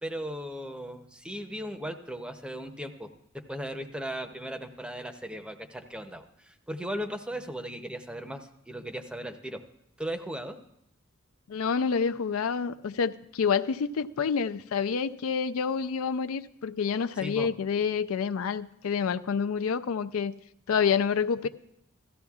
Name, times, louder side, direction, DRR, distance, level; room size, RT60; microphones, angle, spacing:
voice 1, 0.0-9.6 10.0-10.6 17.2-17.5, equal, 5° right, 7 dB, 0.6 m, -37 dB
voice 2, 11.5-20.3 20.7-21.5, left 6 dB, 80° left, 12 dB, 0.4 m, -28 dB
16.5 x 14.0 x 2.4 m, 0.78 s
head